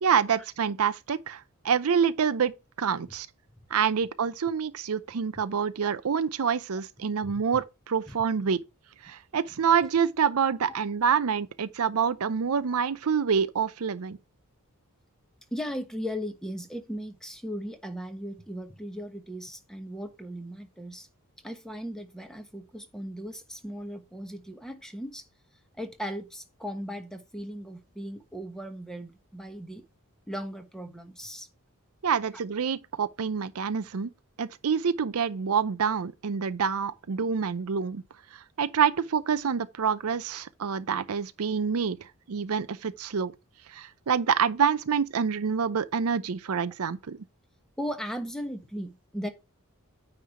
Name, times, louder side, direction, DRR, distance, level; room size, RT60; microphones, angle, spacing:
voice 1, 0.0-2.5 2.8-3.3 3.7-8.6 9.0-14.2 32.0-34.1 34.4-38.0 38.3-43.3 43.7-47.2, right 6 dB, 70° right, 0.5 m, -27 dB
voice 2, 15.5-21.1 21.4-25.2 25.8-29.8 30.3-31.5 47.8-49.3, equal, ahead, 1.1 m, -37 dB
9.3 x 3.3 x 5.7 m
head